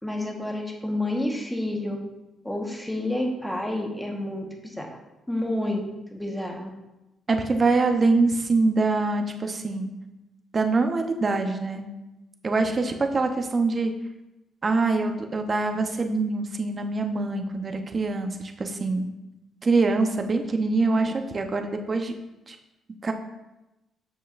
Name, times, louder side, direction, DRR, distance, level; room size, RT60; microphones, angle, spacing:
voice 1, 0.0-2.0 2.4-4.9 5.3-6.7, left 1 dB, 5° left, 1 dB, 1.3 m, -29 dB
voice 2, 7.3-9.9 10.5-11.9 12.4-13.9 14.6-19.1 19.6-22.1 22.5-22.6 23.0-23.1, right 3 dB, 35° right, 5 dB, 0.8 m, -24 dB
7.9 x 6.4 x 2.6 m, 0.98 s
cardioid pair, 90°, 0 cm